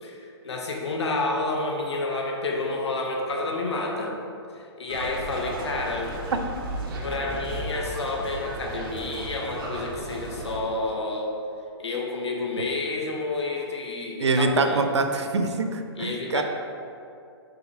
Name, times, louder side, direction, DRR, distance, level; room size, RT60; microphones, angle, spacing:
voice 1, 0.0-4.2 4.5-6.1 7.0-11.3 11.8-14.8 16.0-16.4, left 2 dB, 80° left, 0 dB, 1.2 m, -30 dB
sound 1, 4.9-10.6, right 1 dB, 50° right, 1.2 m, -34 dB
voice 2, 14.2-16.4, right 3 dB, 85° right, 6 dB, 0.6 m, -24 dB
5.3 x 4.0 x 4.7 m, 2.5 s
hypercardioid pair, 145°, 14 cm